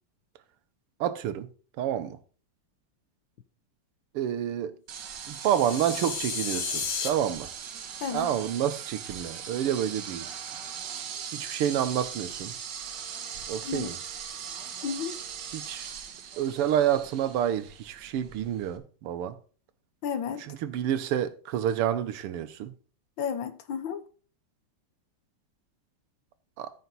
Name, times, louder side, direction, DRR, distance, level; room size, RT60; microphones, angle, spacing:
voice 1, 1.0-1.5 1.8-2.2 4.1-4.8 5.3-7.5 8.1-10.3 11.3-12.5 13.5-14.0 15.5-15.9 16.4-19.4 20.4-22.7 26.6-26.7, right 10 dB, 90° right, 1.8 m, -29 dB
sound 1, 4.9-18.8, right 7 dB, 60° right, 1.6 m, -40 dB
sound 2, 5.3-7.1, left 6 dB, 85° left, 2.9 m, -33 dB
voice 2, 14.8-15.2 20.0-20.4 23.2-24.0, left 7 dB, 65° left, 1.6 m, -32 dB
13.5 x 5.7 x 4.0 m
omnidirectional pair, 2.4 m